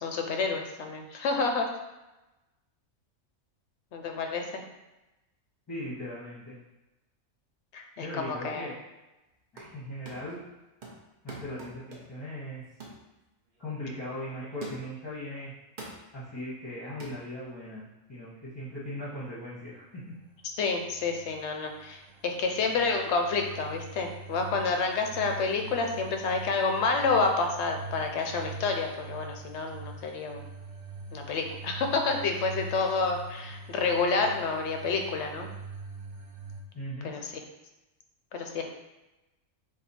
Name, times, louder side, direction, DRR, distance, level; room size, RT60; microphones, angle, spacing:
voice 1, 0.0-1.7 3.9-4.6 7.7-8.7 20.6-30.4 31.1-35.5 37.0-37.3 38.3-38.6, left 4 dB, 65° left, 4 dB, 0.8 m, -29 dB
voice 2, 5.7-6.5 8.0-8.7 9.5-10.4 11.2-12.6 13.6-15.5 16.1-20.1 36.7-37.1, left 1 dB, 20° left, -10 dB, 1.1 m, -39 dB
sound 1, 9.3-9.8 10.0-10.4 10.8-12.2 12.8-13.0 13.5-13.7 14.6-15.0 15.8-16.1 17.0-17.2, right 2 dB, 40° right, 0.8 m, -44 dB
sound 2, 20.3-36.6, right 3 dB, 75° right, 1.0 m, -43 dB
4.2 x 2.8 x 4.1 m, 1.0 s
omnidirectional pair, 1.5 m